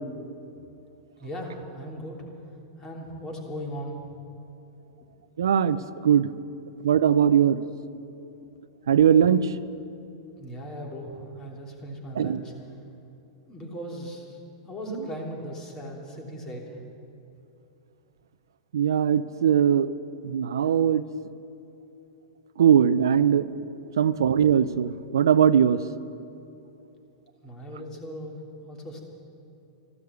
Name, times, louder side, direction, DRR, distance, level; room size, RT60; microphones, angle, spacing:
voice 1, 1.2-2.2 2.8-4.1 10.4-12.5 13.5-14.4 14.6-16.7 27.4-29.0, equal, 25° left, 0 dB, 3.1 m, -38 dB
voice 2, 5.4-6.3 6.8-7.6 8.9-9.6 12.2-12.4 14.9-15.0 18.7-19.9 20.2-21.0 22.6-23.5 24.0-25.8, right 8 dB, 90° right, 14 dB, 0.5 m, -20 dB
14.0 x 12.5 x 8.1 m, 2.8 s
hypercardioid pair, 130°, 2 cm